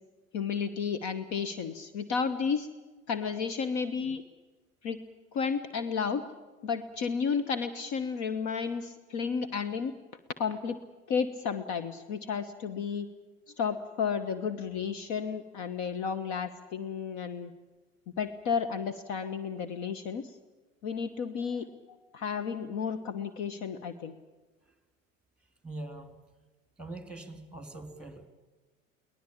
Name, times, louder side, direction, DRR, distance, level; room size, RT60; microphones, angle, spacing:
voice 1, 0.3-2.7 3.1-4.2 4.8-5.0 5.3-6.2 6.6-9.9 10.4-10.8 11.1-13.1 13.5-17.5 18.2-20.4 20.8-21.7 22.1-24.2, left 6 dB, 45° left, 11 dB, 1.3 m, -32 dB
voice 2, 25.6-26.3 26.8-28.3, right 2 dB, ahead, 8 dB, 3.3 m, -43 dB
23.5 x 18.5 x 8.7 m, 1.2 s
figure-of-eight pair, 75°, 40 cm